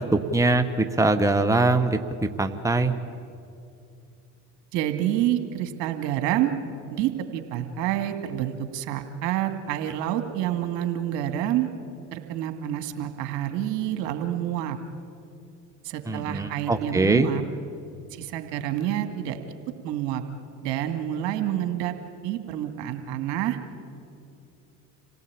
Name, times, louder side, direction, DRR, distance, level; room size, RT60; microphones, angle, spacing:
voice 1, 0.0-2.0 2.4-2.9 16.1-17.3, right 2 dB, 5° right, 8 dB, 1.3 m, -22 dB
voice 2, 4.7-6.5 6.9-11.7 12.1-14.8 15.8-17.4 18.2-19.4 19.8-20.2 20.6-21.9 22.2-23.6, right 12 dB, 65° right, 7 dB, 2.3 m, -28 dB
27.0 x 17.5 x 8.8 m, 2.6 s
hypercardioid pair, 75°, 47 cm